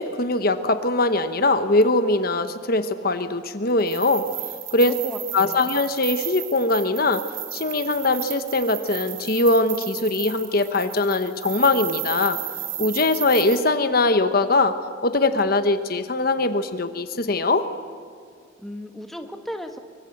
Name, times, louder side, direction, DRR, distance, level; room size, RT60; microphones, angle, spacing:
voice 1, 0.0-4.3 4.7-4.9 5.3-7.2 7.5-12.4 12.8-14.7 15.0-17.7, left 2 dB, 50° left, 9 dB, 1.1 m, -21 dB
sound 1, 3.8-13.6, right 12 dB, 75° right, 3.2 m, -34 dB
voice 2, 4.8-5.7 18.6-19.8, equal, ahead, 5 dB, 1.5 m, -35 dB
24.5 x 24.0 x 7.9 m, 2.1 s
head